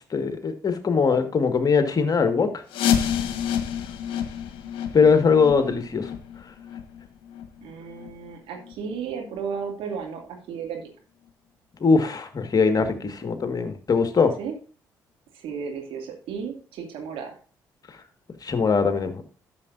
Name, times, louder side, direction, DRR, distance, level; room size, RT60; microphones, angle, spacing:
voice 1, 0.0-2.6 4.9-6.1 11.8-14.3 18.4-19.2, left 5 dB, 40° left, 1.7 m, -21 dB
sound 1, 2.7-8.3 8.6-8.7 9.3-9.4 10.0-10.1 10.6-10.7, left 9 dB, 65° left, 1.3 m, -29 dB
voice 2, 5.2-5.8 7.6-10.9 14.4-14.5 15.3-17.4, right 6 dB, 65° right, 2.4 m, -34 dB
12.5 x 6.9 x 2.6 m
hypercardioid pair, 45°, 10 cm